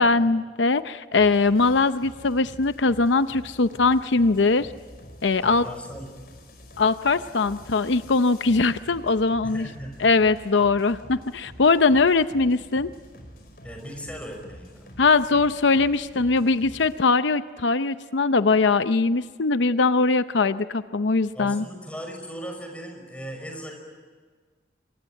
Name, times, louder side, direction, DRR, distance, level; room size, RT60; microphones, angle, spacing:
voice 1, 0.0-4.7 5.2-5.6 6.8-9.7 10.0-12.9 15.0-21.6, left 3 dB, 80° left, 12 dB, 0.7 m, -21 dB
sound 1, 1.1-17.0, equal, 55° left, 5.2 m, -47 dB
voice 2, 5.4-6.1 9.4-10.1 13.6-14.9 21.3-23.7, equal, 5° left, 2 dB, 5.7 m, -38 dB
26.5 x 23.5 x 9.0 m, 1.5 s
head